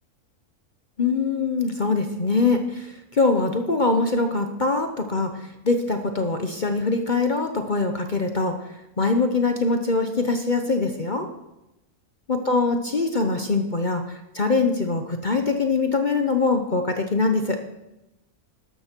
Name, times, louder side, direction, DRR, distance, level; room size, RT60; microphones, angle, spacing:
voice 1, 1.0-11.3 12.3-17.6, left 3 dB, 35° left, 5 dB, 0.9 m, -23 dB
13.0 x 12.5 x 4.5 m, 0.94 s
omnidirectional pair, 1.5 m